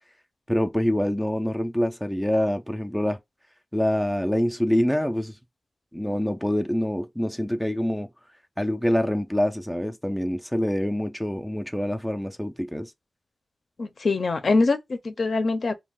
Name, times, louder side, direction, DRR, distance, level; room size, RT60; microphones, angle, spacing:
voice 1, 0.5-3.2 3.7-5.3 5.9-8.1 8.6-12.9, equal, ahead, 0.3 m, -25 dB
voice 2, 13.8-15.8, left 3 dB, 60° left, 0.5 m, -23 dB
2.2 x 2.2 x 3.5 m
wide cardioid pair, 85°, 0 cm